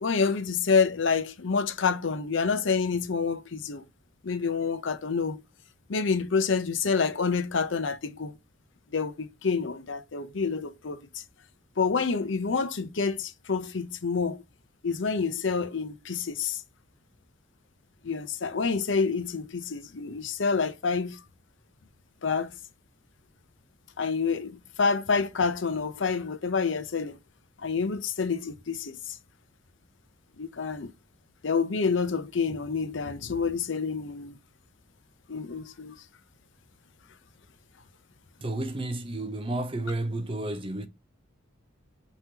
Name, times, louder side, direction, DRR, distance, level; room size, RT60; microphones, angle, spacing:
voice 1, 0.0-3.8 4.2-5.4 5.9-8.3 8.9-11.0 11.8-14.4 14.8-16.6 18.0-21.2 22.2-22.5 24.0-27.2 27.6-29.0 30.4-30.9 31.4-34.3 35.3-35.9, left 5 dB, 70° left, 0.7 m, -28 dB
voice 2, 38.4-40.9, right 2 dB, 25° right, 0.6 m, -31 dB
5.5 x 3.0 x 2.8 m
head